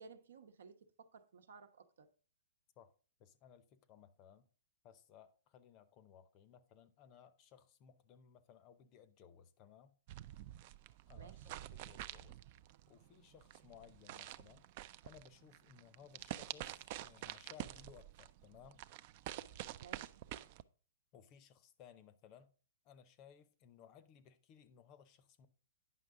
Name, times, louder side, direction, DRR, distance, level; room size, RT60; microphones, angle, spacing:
voice 1, 0.0-2.1 11.2-11.5 19.8-20.2, right 5 dB, 80° right, 1.0 m, -57 dB
voice 2, 3.2-4.5 4.8-9.9 11.1-12.4 12.9-14.7 15.0-18.8 21.1-22.5 22.8-25.5, left 8 dB, 30° left, 0.6 m, -61 dB
sound 1, 10.1-20.6, right 14 dB, 40° right, 0.3 m, -48 dB
9.4 x 5.8 x 3.7 m
hypercardioid pair, 160°, 0 cm